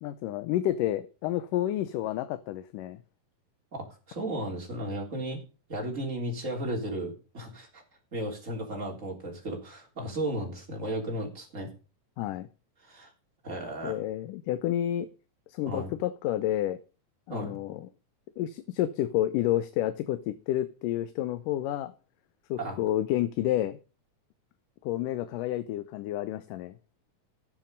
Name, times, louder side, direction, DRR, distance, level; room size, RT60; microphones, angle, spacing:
voice 1, 0.0-3.0 12.2-12.5 13.8-15.1 15.5-16.8 17.3-17.9 18.4-21.9 22.5-23.8 24.8-26.8, left 13 dB, 80° left, 12 dB, 2.3 m, -30 dB
voice 2, 3.7-5.4 5.7-7.8 8.1-11.7 12.8-13.1 13.4-14.0 15.7-15.9 17.3-17.6 22.6-22.8, right 1 dB, 25° right, 0 dB, 3.5 m, -34 dB
14.5 x 7.5 x 5.3 m, 0.34 s
omnidirectional pair, 3.8 m